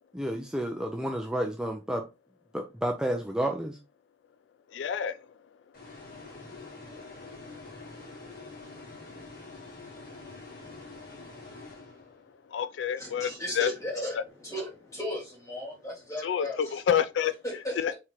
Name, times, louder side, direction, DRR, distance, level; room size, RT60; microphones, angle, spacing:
voice 1, 0.1-2.0 2.5-3.8, right 1 dB, 5° right, 0.5 m, -30 dB
voice 2, 4.7-5.3 7.0-7.5 7.9-8.3 12.1-12.2 12.5-13.7 14.2-14.3 16.2-17.3 17.8-17.9, left 8 dB, 85° left, 0.3 m, -29 dB
sound 1, 5.7-12.4, left 3 dB, 55° left, 1.8 m, -46 dB
voice 3, 13.0-16.6 17.4-17.9, left 1 dB, 20° left, 2.4 m, -36 dB
4.3 x 3.7 x 3.1 m
head